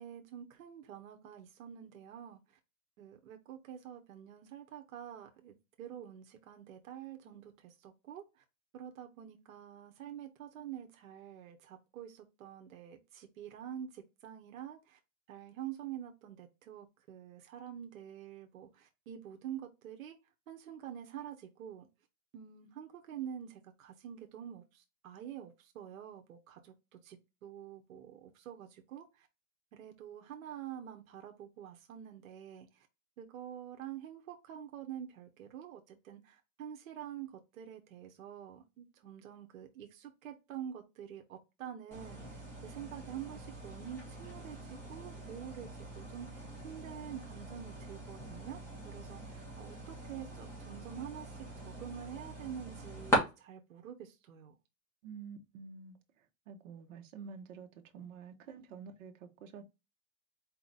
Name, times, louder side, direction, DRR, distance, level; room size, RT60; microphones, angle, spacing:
voice 1, 0.0-2.4 3.0-8.4 8.7-15.0 15.3-20.2 20.5-21.9 22.3-29.3 29.7-32.7 33.2-44.6 44.9-48.6 48.8-54.5, right 9 dB, 90° right, 1.0 m, -47 dB
sound 1, 41.9-53.2, equal, 5° left, 1.6 m, -41 dB
voice 2, 55.0-56.0 56.5-57.7 57.9-59.6, right 6 dB, 65° right, 1.1 m, -48 dB
4.4 x 2.9 x 4.0 m
supercardioid pair, 165°, 40 cm